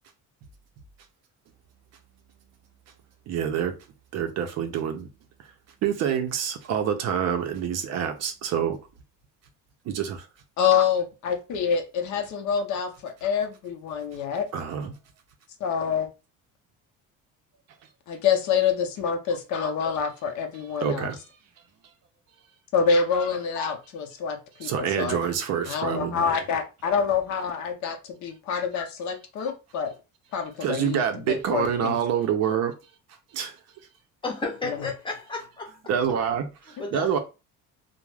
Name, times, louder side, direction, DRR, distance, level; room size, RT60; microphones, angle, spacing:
voice 1, 3.3-3.7 4.1-5.1 5.8-8.8 9.9-10.3 14.5-14.9 20.8-21.2 24.6-26.3 30.6-32.7 33.3-33.6 35.9-37.2, right 8 dB, 50° right, 0.5 m, -27 dB
voice 2, 10.6-14.5 15.6-16.1 18.1-21.1 22.7-25.2 25.7-29.9 30.3-31.0 31.3-32.0 34.6-34.8 36.8-36.9, left 6 dB, 60° left, 0.6 m, -26 dB
voice 3, 34.2-35.8 36.8-37.2, left 3 dB, 15° left, 0.6 m, -32 dB
2.3 x 2.0 x 3.1 m
cardioid pair, 160°, 33 cm